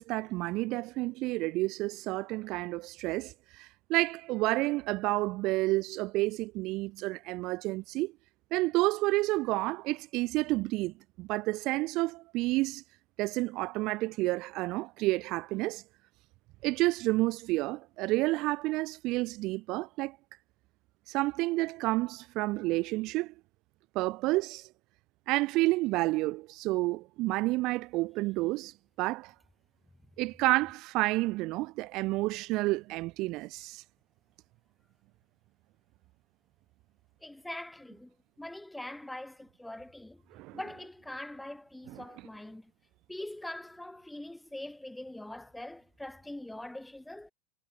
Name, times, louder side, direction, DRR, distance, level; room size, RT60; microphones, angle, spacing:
voice 1, 0.0-8.1 8.5-12.8 13.2-15.8 16.6-20.2 21.1-23.3 23.9-24.7 25.3-29.3 30.2-33.8 40.3-40.6 42.0-42.1, right 21 dB, 55° right, 0.5 m, -30 dB
voice 2, 37.2-40.2 40.5-42.7 43.1-47.3, left 1 dB, 5° left, 2.4 m, -43 dB
hypercardioid pair, 90°, 0 cm